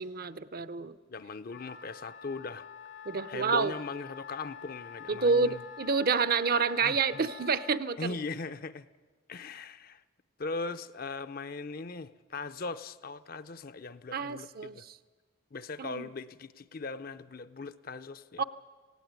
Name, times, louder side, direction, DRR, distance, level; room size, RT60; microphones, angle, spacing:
voice 1, 0.0-0.9 3.1-3.7 5.1-8.1 14.1-14.9 15.8-16.1 18.4-18.5, right 4 dB, 50° right, 0.6 m, -28 dB
voice 2, 1.1-2.6 3.3-5.6 6.8-7.3 8.0-8.9 9.3-10.0 10.4-14.8 15.5-18.4, left 3 dB, 45° left, 0.6 m, -39 dB
Wind instrument woodwind instrument, 1.5-7.8, left 8 dB, 65° left, 1.1 m, -47 dB
17.5 x 16.5 x 9.5 m
head